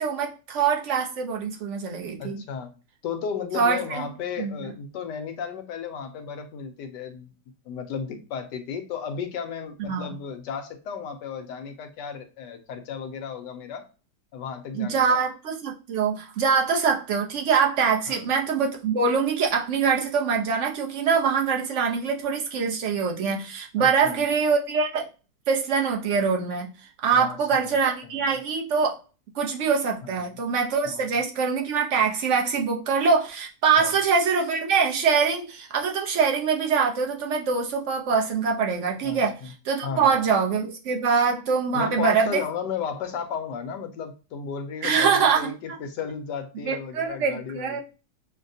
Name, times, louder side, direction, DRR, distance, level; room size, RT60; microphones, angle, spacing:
voice 1, 0.0-2.4 3.5-4.1 4.4-4.7 9.9-10.1 14.7-25.1 25.5-26.7 27.0-29.0 29.3-39.4 39.6-42.4 44.8-45.5 46.6-47.8, right 5 dB, 55° right, 0.9 m, -24 dB
voice 2, 2.2-2.7 3.0-7.3 7.7-13.9 14.3-15.2 18.1-18.2 23.8-24.2 27.1-27.8 28.0-28.3 30.0-30.2 30.9-31.1 33.8-34.0 39.0-39.5 39.8-40.2 41.7-47.8, left 6 dB, 75° left, 1.3 m, -34 dB
6.4 x 2.2 x 2.7 m
omnidirectional pair, 1.9 m